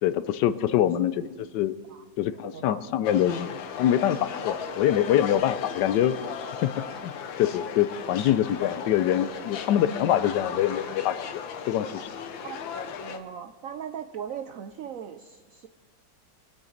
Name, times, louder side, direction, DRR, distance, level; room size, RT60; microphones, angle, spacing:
voice 1, 0.0-1.8 2.2-6.1 6.6-6.7 7.0-7.1 7.4-11.4 11.7-12.1, left 11 dB, 75° left, 14 dB, 1.2 m, -25 dB
voice 2, 2.3-2.8 12.4-12.6 13.0-15.7, right 8 dB, 90° right, 8 dB, 0.7 m, -39 dB
sound 1, 3.0-13.2, left 7 dB, 90° left, 1.7 m, -36 dB
sound 2, 4.3-11.0, left 3 dB, 35° left, 1.8 m, -51 dB
23.5 x 8.5 x 4.0 m, 1.3 s
omnidirectional pair, 2.0 m